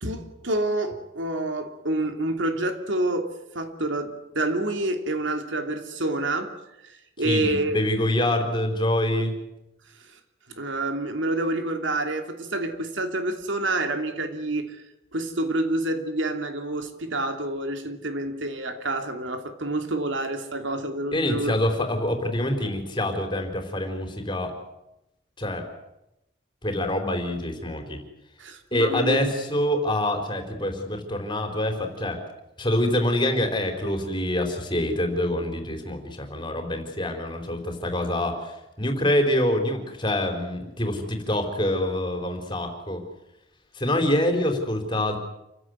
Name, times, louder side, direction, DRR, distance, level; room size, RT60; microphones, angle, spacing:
voice 1, 0.0-6.5 6.8-7.8 10.5-14.8 15.1-21.7 28.4-29.3, right 2 dB, 75° right, 2.8 m, -28 dB
voice 2, 7.2-9.3 21.1-24.5 25.4-25.7 26.6-28.0 28.7-32.2 32.6-43.0 43.7-45.2, left 1 dB, 25° left, 4.1 m, -26 dB
28.0 x 16.0 x 9.6 m
head